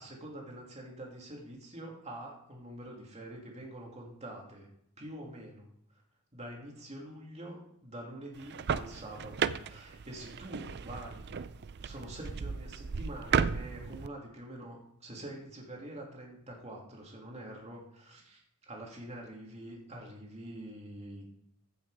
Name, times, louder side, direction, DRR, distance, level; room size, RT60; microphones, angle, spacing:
voice 1, 0.0-4.7 5.0-6.0 6.3-11.4 11.8-18.4 18.7-21.3, right 1 dB, 30° right, -1 dB, 2.8 m, -46 dB
sound 1, 8.4-14.1, right 6 dB, 50° right, 0.5 m, -34 dB
15.0 x 6.9 x 4.9 m, 0.73 s
head